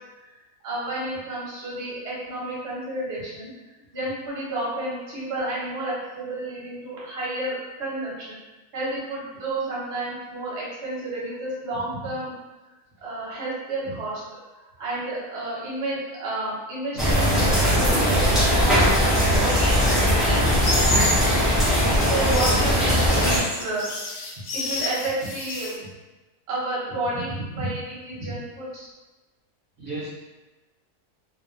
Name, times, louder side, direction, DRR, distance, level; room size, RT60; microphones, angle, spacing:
voice 1, 0.6-3.5 3.9-8.4 8.7-12.4 13.0-14.2 14.5-20.0 21.9-23.9 24.5-25.8 26.5-28.9, right 2 dB, 50° right, -8 dB, 1.1 m, -31 dB
sound 1, 17.0-23.4, equal, ahead, 0.3 m, -20 dB
sound 2, 20.6-21.3 22.1-25.7, left 1 dB, 70° left, 0.9 m, -29 dB
voice 2, 29.8-30.1, right 1 dB, 70° right, -9 dB, 1.0 m, -33 dB
2.6 x 2.3 x 2.3 m, 1.1 s
omnidirectional pair, 1.6 m